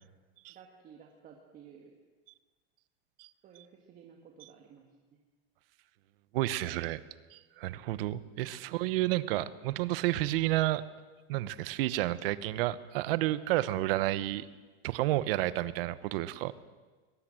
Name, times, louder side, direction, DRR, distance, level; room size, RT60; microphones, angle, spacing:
voice 1, 0.5-1.9 3.4-4.9 8.4-8.9, right 7 dB, 30° right, 1 dB, 1.9 m, -55 dB
voice 2, 6.3-7.0 7.3-10.8 11.3-14.4 14.8-16.5, right 16 dB, 70° right, 16 dB, 1.1 m, -30 dB
21.5 x 20.5 x 7.8 m, 1.3 s
supercardioid pair, 165°, 30 cm